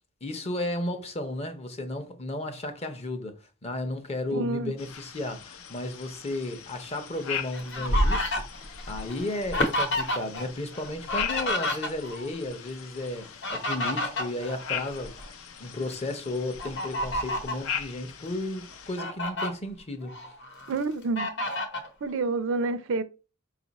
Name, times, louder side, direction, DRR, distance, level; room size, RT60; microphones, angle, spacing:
voice 1, 0.2-15.1 15.6-20.3, left 1 dB, 30° left, 0.6 m, -34 dB
voice 2, 4.3-4.7 20.7-21.3 22.0-23.0, right 3 dB, 60° right, 0.4 m, -28 dB
sound 1, 4.8-19.0, left 8 dB, 75° left, 0.6 m, -40 dB
Fowl, 7.1-10.4 10.7-12.3 13.2-15.3 15.7-15.9 16.6-17.6 18.3-18.4 18.7-19.5 20.0-20.7 21.2-21.9, left 1 dB, 55° left, 0.9 m, -29 dB
5.0 x 2.4 x 4.0 m
head